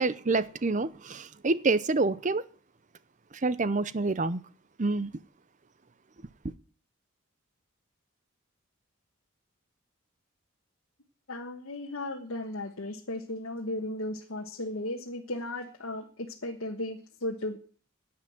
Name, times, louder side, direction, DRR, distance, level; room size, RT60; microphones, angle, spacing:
voice 1, 0.0-2.4 3.4-4.4 4.8-5.1, right 3 dB, 35° right, 0.6 m, -27 dB
voice 2, 11.3-17.6, left 1 dB, 75° left, 1.4 m, -35 dB
10.5 x 8.7 x 8.7 m
head